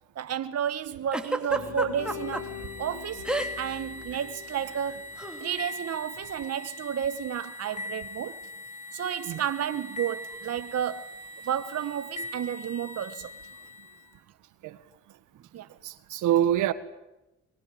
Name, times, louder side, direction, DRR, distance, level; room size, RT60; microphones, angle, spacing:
voice 1, 0.2-2.5 2.8-3.3 3.6-5.0 5.4-8.4 8.9-11.1 11.4-13.3 15.5-15.7, right 9 dB, 55° right, 1.2 m, -31 dB
Giggle, 1.1-2.4 3.2-3.8 4.0-4.3 5.2-5.4, right 1 dB, 5° right, 2.9 m, -30 dB
sound 1, 1.5-5.6, left 8 dB, 70° left, 7.4 m, -42 dB
sound 2, 2.0-14.1, left 2 dB, 25° left, 3.5 m, -42 dB
voice 2, 15.8-16.7, right 11 dB, 90° right, 1.7 m, -25 dB
24.5 x 22.5 x 9.1 m
cardioid pair, 90°, 30 cm